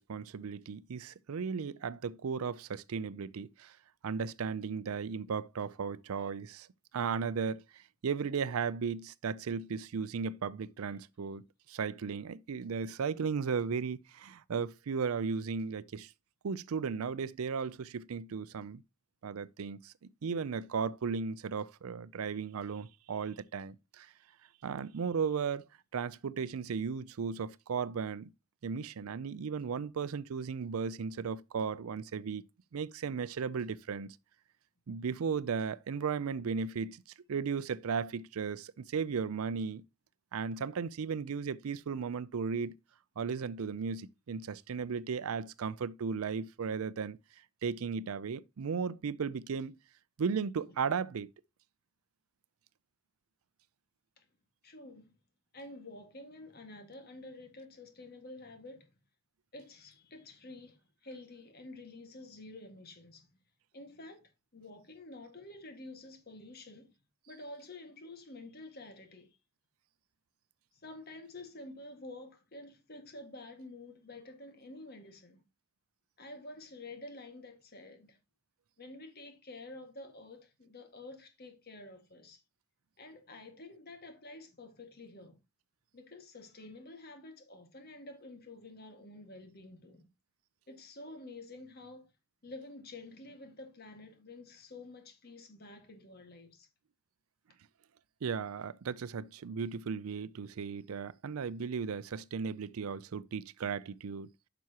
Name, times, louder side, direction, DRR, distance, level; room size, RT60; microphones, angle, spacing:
voice 1, 0.0-3.8 4.0-6.7 6.9-16.1 16.4-18.8 19.2-19.9 20.2-24.1 24.6-25.6 25.9-28.3 28.6-32.4 32.7-34.2 34.9-37.0 37.3-39.8 40.3-42.7 43.2-47.2 47.6-49.8 50.2-51.3 98.2-104.3, right 6 dB, 90° right, 0.5 m, -35 dB
voice 2, 54.6-55.2 55.5-58.9 59.5-63.3 63.7-66.9 67.3-69.4 70.7-75.4 76.2-78.2 78.8-82.4 83.0-85.4 85.9-90.1 90.7-92.1 92.4-96.7, left 2 dB, 45° left, 1.8 m, -49 dB
9.3 x 6.0 x 2.9 m
head